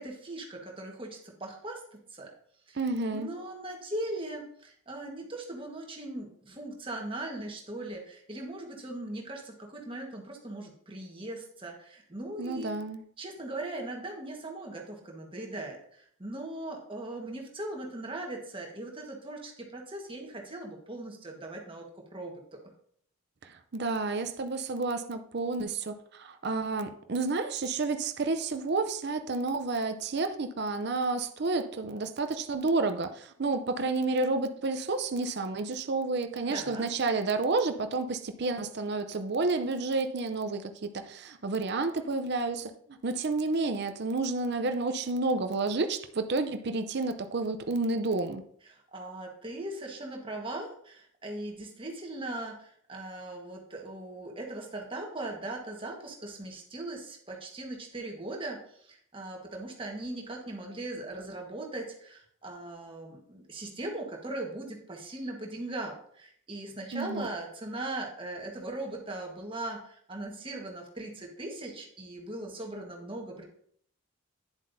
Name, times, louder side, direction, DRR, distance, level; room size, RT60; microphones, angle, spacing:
voice 1, 0.0-2.3 2.7-2.8 3.1-12.7 13.2-21.9 22.1-22.4 36.4-36.9 48.6-73.4, right 2 dB, 25° right, 1 dB, 1.4 m, -39 dB
voice 2, 2.8-3.3 12.4-13.0 23.4-48.4 66.9-67.3, right 3 dB, 50° right, 8 dB, 0.6 m, -30 dB
9.8 x 7.5 x 2.7 m, 0.63 s
head